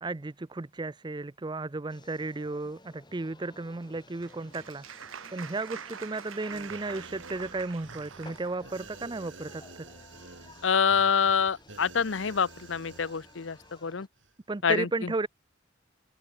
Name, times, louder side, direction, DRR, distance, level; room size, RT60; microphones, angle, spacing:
voice 1, 0.0-4.8 5.3-9.9 14.5-15.3, right 3 dB, 25° right, 0.5 m, -34 dB
sound 1, 1.9-14.1, left 2 dB, 20° left, 4.3 m, -55 dB
Applause, 3.8-8.7, right 7 dB, 85° right, 1.3 m, -45 dB
sound 2, 6.5-13.9 14.2-14.3, right 3 dB, 65° right, 6.7 m, -50 dB
voice 2, 10.6-14.1 14.6-15.1, left 6 dB, 65° left, 0.7 m, -26 dB
head